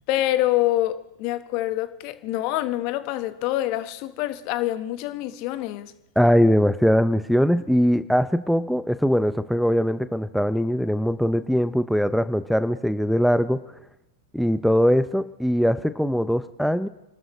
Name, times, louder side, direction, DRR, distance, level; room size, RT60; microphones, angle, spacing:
voice 1, 0.1-5.9, left 15 dB, 45° left, 1.1 m, -26 dB
voice 2, 6.2-13.6 14.3-16.9, equal, ahead, 0.5 m, -21 dB
29.0 x 12.5 x 3.1 m
hypercardioid pair, 105°, 0 cm